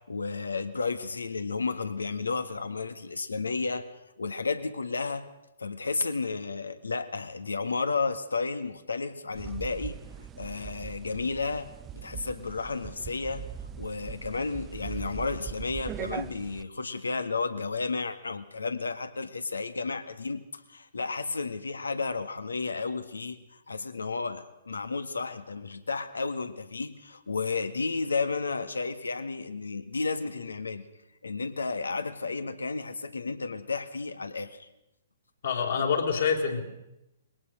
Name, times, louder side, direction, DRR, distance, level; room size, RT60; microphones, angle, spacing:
voice 1, 0.0-3.9 4.2-5.3 5.6-10.0 10.4-11.7 11.9-13.4 13.8-23.4 23.7-30.9 31.2-34.7, left 4 dB, 80° left, 10 dB, 1.7 m, -32 dB
sound 1, 9.3-16.6, right 9 dB, 20° right, 0.8 m, -41 dB
voice 2, 35.4-36.6, left 6 dB, 60° left, 2 dB, 4.1 m, -26 dB
22.0 x 18.5 x 6.4 m, 0.91 s
figure-of-eight pair, 120°, 0 cm